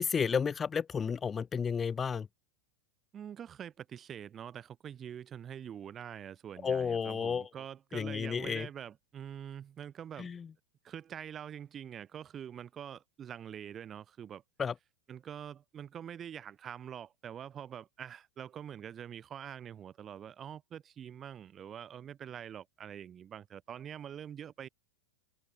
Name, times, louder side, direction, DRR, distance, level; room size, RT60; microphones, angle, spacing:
voice 1, 0.0-2.3 6.6-7.5 7.9-8.7 10.2-10.5 14.6-14.7, left 6 dB, 20° left, 0.5 m, -32 dB
voice 2, 3.1-10.3 10.8-14.4 15.1-24.7, right 9 dB, 25° right, 7.9 m, -45 dB
figure-of-eight pair, 90°, 0 cm